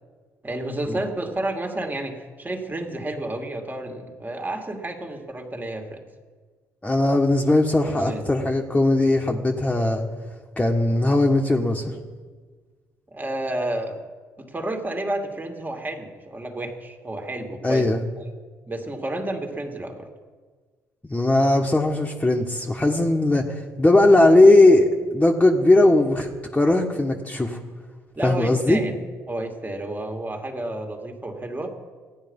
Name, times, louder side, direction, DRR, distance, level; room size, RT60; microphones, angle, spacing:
voice 1, 0.4-6.0 8.0-8.2 13.1-14.0 14.4-17.9 18.7-20.1 28.1-29.0 29.3-31.7, right 1 dB, 25° right, 4 dB, 2.4 m, -31 dB
voice 2, 6.8-10.0 10.6-12.0 17.6-18.0 21.0-27.6 28.2-28.8, left 2 dB, 15° left, 1 dB, 1.6 m, -19 dB
16.0 x 10.0 x 5.5 m, 1.5 s
hypercardioid pair, 50°, 8 cm